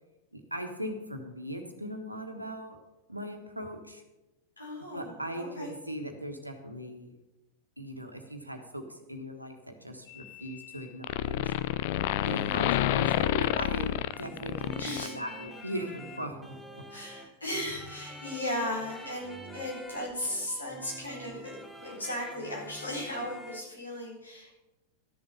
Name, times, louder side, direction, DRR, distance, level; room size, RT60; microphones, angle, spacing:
voice 1, 0.3-2.8 3.1-4.0 4.9-7.1 7.8-11.5 12.2-16.8, equal, 85° right, 5 dB, 1.4 m, -39 dB
voice 2, 4.6-5.7 12.2-12.9 14.7-15.1 16.9-24.5, left 1 dB, 80° left, -3 dB, 4.5 m, -36 dB
sound 1, 10.1-10.8 11.0-15.5, left 14 dB, 50° left, 0.4 m, -29 dB
sound 2, 13.1-23.6, equal, ahead, 1.1 m, -47 dB
12.5 x 7.1 x 6.8 m, 1.0 s
figure-of-eight pair, 90°, 0 cm